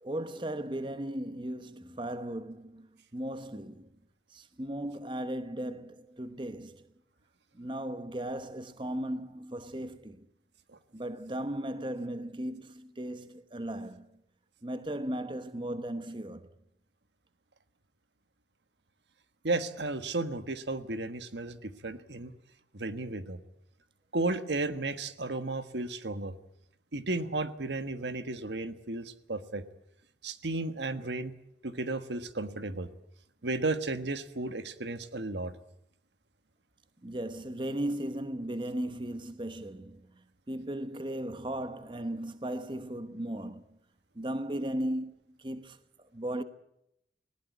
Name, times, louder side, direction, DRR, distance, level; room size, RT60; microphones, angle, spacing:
voice 1, 0.0-3.9 4.3-6.9 7.5-10.3 10.9-14.2 14.6-16.5 37.0-40.1 40.5-43.8 44.1-46.4, right 1 dB, 30° right, 1.1 m, -36 dB
voice 2, 19.4-22.3 22.7-23.4 24.1-26.3 26.9-29.6 30.2-31.3 31.6-32.9 33.4-35.5, right 2 dB, 80° right, 1.4 m, -34 dB
19.5 x 18.5 x 9.5 m
head